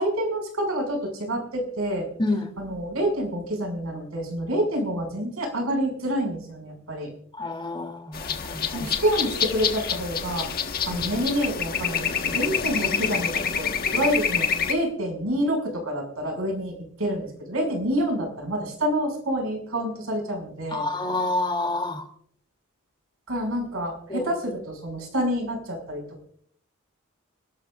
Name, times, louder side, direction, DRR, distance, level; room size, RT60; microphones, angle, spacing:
voice 1, 0.0-2.1 2.6-7.1 8.7-10.5 10.9-20.9 23.3-26.0, equal, 80° right, 1 dB, 5.9 m, -27 dB
voice 2, 2.2-2.5 7.3-8.9 10.9-11.0 20.7-22.0 24.1-24.3, left 2 dB, 25° left, 5 dB, 2.7 m, -28 dB
sound 1, 8.1-14.7, left 6 dB, 45° left, 1.4 m, -27 dB
30.0 x 12.0 x 2.5 m, 0.64 s
head